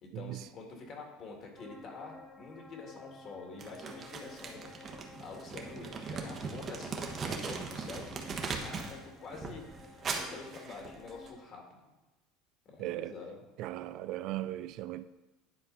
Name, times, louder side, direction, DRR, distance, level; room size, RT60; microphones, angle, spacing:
voice 1, 0.0-4.7 5.2-9.6 10.1-11.8 12.7-13.4, left 4 dB, 45° left, 2.0 m, -47 dB
sound 1, 1.6-11.4, left 3 dB, 20° left, 0.7 m, -53 dB
Crumpling crinkling, 3.6-9.0 9.3-11.3, right 4 dB, 35° right, 1.1 m, -39 dB
voice 2, 12.8-13.1 13.6-15.0, right 15 dB, 60° right, 0.3 m, -37 dB
10.0 x 4.4 x 4.0 m
supercardioid pair, 105°, 0 cm